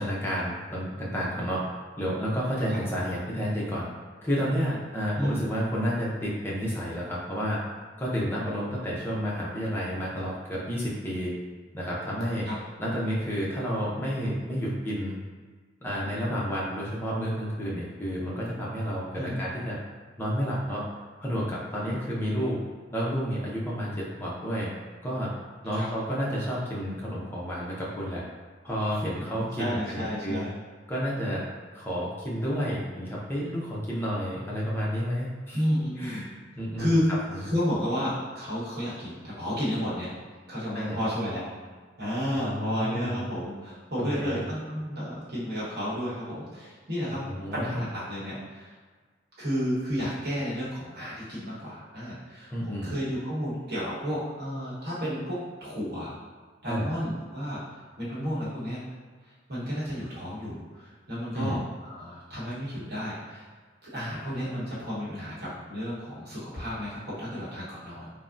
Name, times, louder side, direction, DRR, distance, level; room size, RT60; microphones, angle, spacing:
voice 1, 0.0-1.6 2.0-3.9 4.2-7.6 8.0-11.3 11.7-12.5 12.8-15.2 15.8-19.8 20.2-20.9 21.2-22.6 22.9-24.7 25.0-25.3 25.6-28.2 28.6-30.4 30.9-31.5 31.7-35.6 36.0-36.3 36.6-36.9 40.7-41.0 42.3-43.2 44.0-44.4 47.1-47.9 52.5-53.0 56.7-56.9 61.3-61.6, equal, 10° left, -6 dB, 0.5 m, -30 dB
voice 2, 29.0-30.6 35.5-36.3 36.8-37.1 37.4-40.1 40.5-41.4 42.0-47.2 47.5-48.7 49.4-56.2 56.6-57.6 58.0-58.8 59.5-63.5 63.8-68.1, equal, 60° right, -9 dB, 1.0 m, -32 dB
3.3 x 2.1 x 2.5 m, 1.5 s
head